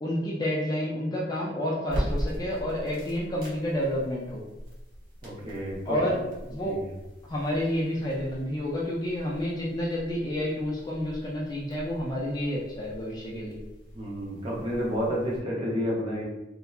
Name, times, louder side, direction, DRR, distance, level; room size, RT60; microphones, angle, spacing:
voice 1, 0.0-4.4 5.9-6.7 7.2-13.6, equal, 20° left, -4 dB, 0.3 m, -30 dB
sound 1, 1.8-15.4, equal, 50° right, 1.0 m, -40 dB
voice 2, 5.2-6.2 6.6-6.8 13.9-16.2, equal, 30° right, -4 dB, 0.6 m, -30 dB
2.7 x 2.1 x 2.3 m, 1.0 s
head